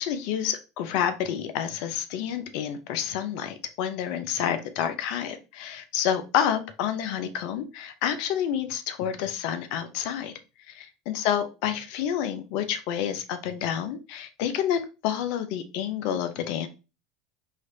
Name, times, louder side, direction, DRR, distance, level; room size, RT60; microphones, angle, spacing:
voice 1, 0.0-10.3 10.7-16.7, left 9 dB, 60° left, 9 dB, 0.5 m, -29 dB
4.0 x 3.0 x 2.7 m, 0.30 s
hypercardioid pair, 75°, 0 cm